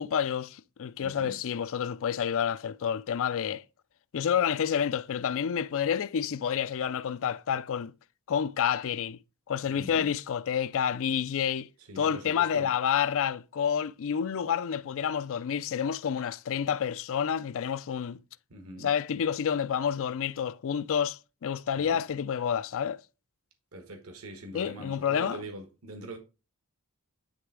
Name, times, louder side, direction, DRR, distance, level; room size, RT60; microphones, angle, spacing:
voice 1, 0.0-3.6 4.1-7.9 8.3-9.2 9.5-11.7 12.0-18.2 18.8-23.0 24.5-25.4, left 8 dB, 65° left, 0.4 m, -29 dB
voice 2, 1.0-1.4 9.7-10.1 11.8-12.7 18.5-18.9 21.7-22.0 23.7-26.2, right 1 dB, 75° right, 1.3 m, -43 dB
9.7 x 3.4 x 4.7 m
head